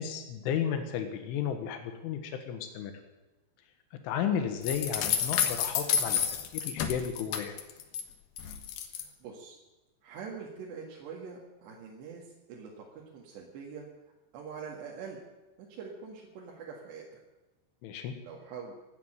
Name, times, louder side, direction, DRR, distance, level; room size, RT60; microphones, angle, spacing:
voice 1, 0.0-2.9 4.0-6.2 6.5-7.6 17.8-18.1, left 8 dB, 85° left, 6 dB, 3.8 m, -33 dB
sound 1, 4.6-8.0 8.4-9.0, left 8 dB, 65° left, 2.6 m, -30 dB
voice 2, 9.0-9.6 10.0-13.9 14.3-15.2 15.7-17.2 18.2-18.7, right 5 dB, 70° right, -2 dB, 4.0 m, -44 dB
17.5 x 9.1 x 9.0 m, 1.1 s
omnidirectional pair, 5.4 m